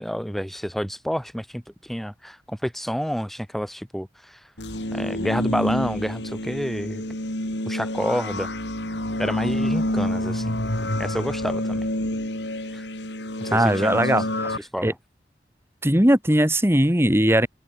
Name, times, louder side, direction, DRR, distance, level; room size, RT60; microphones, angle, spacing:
voice 1, 0.0-4.5 4.9-7.0 7.7-8.5 9.2-10.6 11.0-11.8 12.7-12.9 13.4-14.3 14.6-14.9, equal, ahead, 0.9 m, -29 dB
sound 1, 4.6-14.6, left 1 dB, 85° left, 5.8 m, -28 dB
voice 2, 13.5-14.9 15.8-17.5, right 1 dB, 15° right, 2.3 m, -20 dB
head